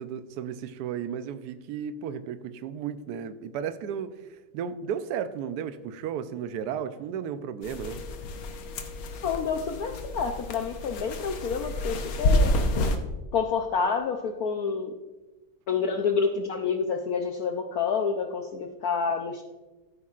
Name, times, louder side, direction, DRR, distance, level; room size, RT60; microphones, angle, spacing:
voice 1, 0.0-4.2 4.5-8.0, right 8 dB, 70° right, 11 dB, 1.0 m, -34 dB
sound 1, 7.6-13.0, left 1 dB, 85° left, 1.8 m, -29 dB
voice 2, 9.2-12.5 13.3-14.9 15.7-19.4, left 5 dB, 70° left, 5 dB, 0.9 m, -28 dB
14.0 x 8.4 x 2.4 m, 1.2 s
omnidirectional pair, 2.2 m